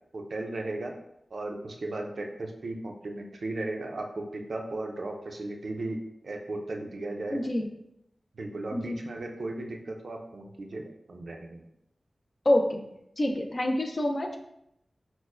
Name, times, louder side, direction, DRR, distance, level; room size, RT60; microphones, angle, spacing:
voice 1, 0.1-0.9 1.3-7.5 8.3-10.8 11.1-11.6, right 2 dB, 75° right, 2 dB, 0.5 m, -36 dB
voice 2, 7.3-7.7 8.7-9.0 12.5-12.8 13.2-14.4, left 1 dB, 40° left, 3 dB, 0.4 m, -27 dB
5.9 x 2.1 x 2.4 m, 0.80 s
wide cardioid pair, 95°, 0 cm